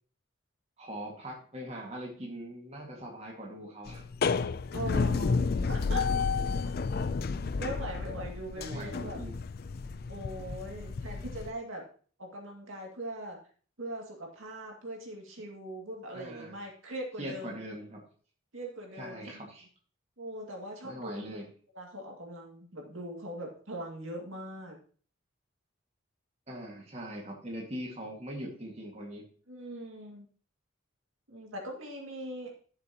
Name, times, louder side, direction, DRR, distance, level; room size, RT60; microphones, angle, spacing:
voice 1, 0.8-4.1 8.6-9.4 16.1-16.6 17.2-18.0 19.0-19.7 20.8-21.5 26.5-29.2, right 1 dB, 30° right, -1 dB, 2.0 m, -41 dB
sound 1, 3.9-11.5, left 4 dB, 50° left, 0.4 m, -31 dB
voice 2, 4.7-6.1 7.6-9.2 10.1-11.8 12.2-13.4 13.8-17.6 18.5-19.5 20.2-21.4 21.7-24.8 29.5-30.2 31.3-32.5, right 1 dB, 85° right, 0 dB, 2.3 m, -41 dB
12.0 x 6.7 x 3.0 m, 0.43 s
head